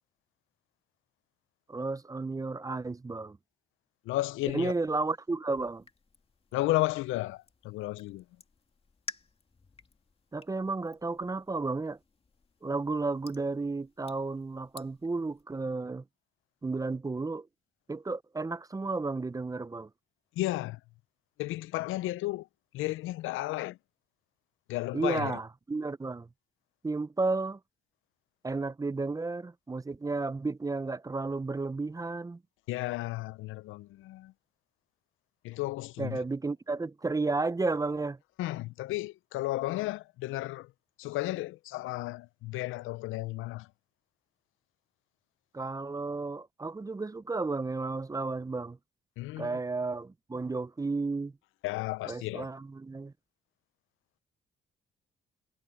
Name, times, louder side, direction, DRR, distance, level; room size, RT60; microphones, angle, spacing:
voice 1, 1.7-3.4 4.5-5.8 10.3-12.0 12.6-16.0 16.6-17.5 17.9-19.9 24.9-26.3 26.8-27.6 28.4-32.4 36.0-38.2 45.5-48.8 49.4-51.3 52.1-53.1, right 3 dB, 15° right, 0.6 m, -32 dB
voice 2, 4.0-4.7 6.5-8.2 20.4-20.8 21.4-22.5 22.7-23.8 24.7-25.4 32.7-34.3 35.4-36.2 38.4-40.7 41.0-43.7 49.2-49.6 51.6-52.5, left 18 dB, 90° left, 0.5 m, -33 dB
sound 1, 5.5-15.4, left 3 dB, 30° left, 2.3 m, -53 dB
cardioid pair, 90°, 20 cm